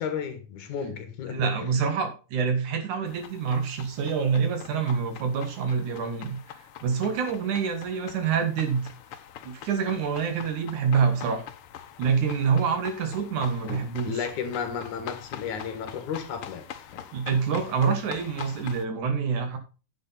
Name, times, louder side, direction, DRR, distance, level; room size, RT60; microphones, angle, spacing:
voice 1, 0.0-1.7 13.7-16.7 16.9-17.0, left 7 dB, 70° left, 2.8 m, -33 dB
voice 2, 1.3-8.9 9.4-11.4 12.0-14.2 17.1-19.6, right 6 dB, 70° right, 3.1 m, -26 dB
sound 1, 3.1-18.9, left 10 dB, 85° left, 1.2 m, -44 dB
10.0 x 8.2 x 4.1 m
omnidirectional pair, 3.7 m